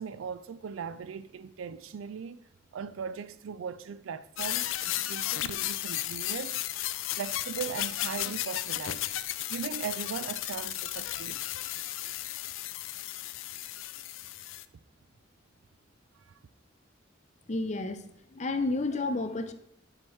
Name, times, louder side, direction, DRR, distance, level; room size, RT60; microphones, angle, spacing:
voice 1, 0.0-2.4 2.7-6.6 7.2-9.1 9.5-11.4 16.2-16.4, right 6 dB, 90° right, 0.4 m, -39 dB
sound 1, 4.4-14.7, left 14 dB, 80° left, 0.4 m, -34 dB
voice 2, 17.5-18.0 18.3-19.5, left 2 dB, 35° left, 0.7 m, -30 dB
7.8 x 7.4 x 3.2 m
head